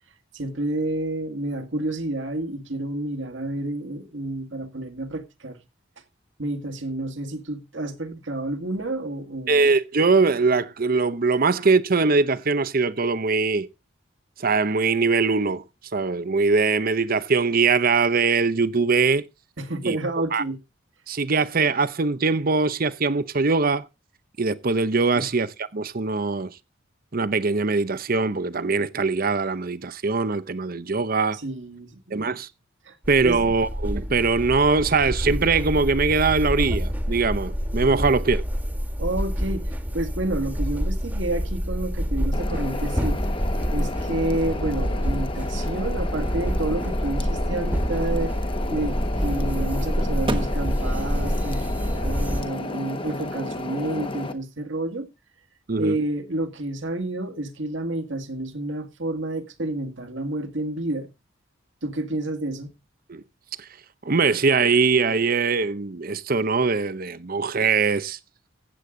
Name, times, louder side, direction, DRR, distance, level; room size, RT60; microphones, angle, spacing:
voice 1, 0.3-5.6 6.4-9.7 19.6-20.6 25.1-25.3 31.3-32.3 32.8-33.0 33.2-33.4 37.9-38.1 39.0-43.2 43.7-48.3 48.7-55.1 55.8-61.1 61.8-62.7, right 2 dB, 65° right, 2.0 m, -30 dB
voice 2, 9.5-13.7 14.4-15.6 15.9-19.3 19.8-20.0 20.3-20.4 21.1-23.9 24.4-26.5 27.1-31.4 32.1-32.5 33.1-38.4 55.7-56.0 63.1-63.2 63.6-63.7 64.0-68.2, right 4 dB, 45° right, 0.7 m, -22 dB
sound 1, 33.0-52.4, equal, 10° right, 1.5 m, -27 dB
sound 2, 42.3-54.3, left 2 dB, 25° left, 1.2 m, -33 dB
sound 3, 50.2-54.9, right 1 dB, 25° right, 1.1 m, -38 dB
15.0 x 8.5 x 3.8 m
head